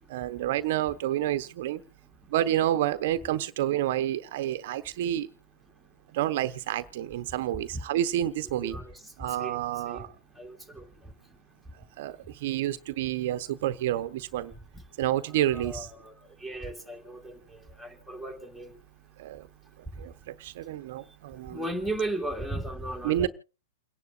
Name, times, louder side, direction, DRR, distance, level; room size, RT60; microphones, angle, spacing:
voice 1, 0.1-1.8 2.3-5.3 6.1-8.8 9.2-10.1 12.0-14.5 15.0-15.9 19.2-19.5 20.0-21.7 23.0-23.3, right 12 dB, 60° right, 0.9 m, -29 dB
voice 2, 8.6-8.9 9.4-9.6 9.9-10.1 10.4-10.9 15.5-16.1 16.4-18.7 21.5-23.3, right 1 dB, 5° left, 2.4 m, -35 dB
29.0 x 10.5 x 2.5 m
hypercardioid pair, 120°, 0 cm